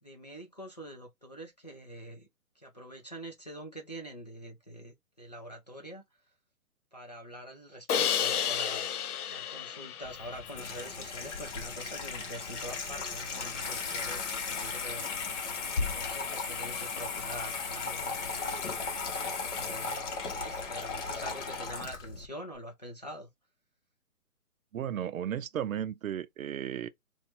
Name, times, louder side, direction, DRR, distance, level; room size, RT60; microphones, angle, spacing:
voice 1, 0.0-2.3 2.6-6.0 6.9-9.0 9.3-15.2 15.7-23.3, right 1 dB, 30° left, 0.4 m, -45 dB
Crash cymbal, 7.9-11.0, left 9 dB, 80° left, 0.6 m, -32 dB
Water tap faucet / Sink (filling or washing), 10.0-22.3, left 4 dB, 50° left, 1.1 m, -36 dB
voice 2, 24.7-26.9, right 9 dB, 65° right, 0.5 m, -34 dB
2.6 x 2.3 x 4.1 m
hypercardioid pair, 155°, 45 cm